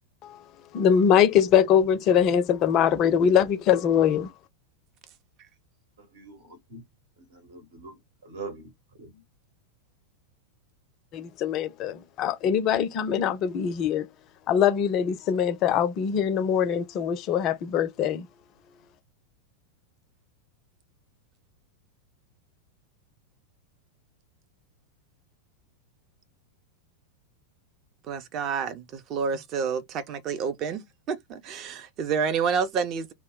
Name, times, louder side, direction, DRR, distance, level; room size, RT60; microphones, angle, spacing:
voice 1, 0.7-4.3 11.1-14.1 14.5-18.2, left 8 dB, 35° left, 0.4 m, -22 dB
voice 2, 6.0-6.8 7.2-8.7 9.0-9.2, right 4 dB, 60° right, 1.0 m, -43 dB
voice 3, 28.1-33.1, right 6 dB, 35° right, 0.5 m, -29 dB
2.2 x 2.0 x 3.7 m
figure-of-eight pair, 90°, 0 cm